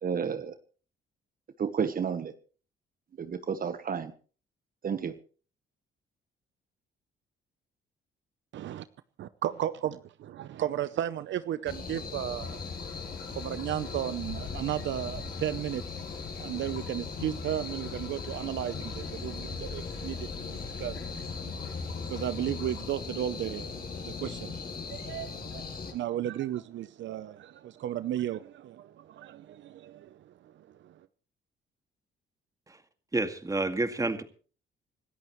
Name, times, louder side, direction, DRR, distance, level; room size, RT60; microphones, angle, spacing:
voice 1, 0.0-0.5 1.6-2.3 3.2-4.1 4.8-5.1, right 7 dB, 45° right, 1.2 m, -31 dB
voice 2, 8.5-8.9 9.2-12.6 13.3-16.1 16.4-21.7 22.1-31.1, right 11 dB, 70° right, 0.7 m, -35 dB
sound 1, 11.7-25.9, left 4 dB, 50° left, 6.7 m, -39 dB
sound 2, 12.4-22.8, left 5 dB, 80° left, 5.9 m, -44 dB
voice 3, 33.1-34.2, right 2 dB, 15° right, 2.1 m, -29 dB
26.0 x 13.5 x 3.2 m
cardioid pair, 90°, 20 cm